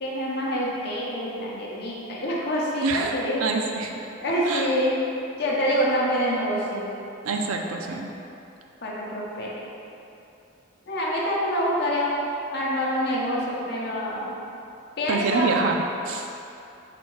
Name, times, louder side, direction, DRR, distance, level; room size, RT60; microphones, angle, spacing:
voice 1, 0.0-3.4 4.2-5.0 5.4-6.8 8.8-9.5 10.9-12.2 12.5-14.4 15.0-15.5, equal, 50° left, -4 dB, 0.7 m, -26 dB
voice 2, 2.8-3.1 3.4-3.9 4.5-4.7 7.2-8.1 15.1-16.3, right 3 dB, 75° right, 2 dB, 0.4 m, -26 dB
4.3 x 2.7 x 4.5 m, 2.8 s
head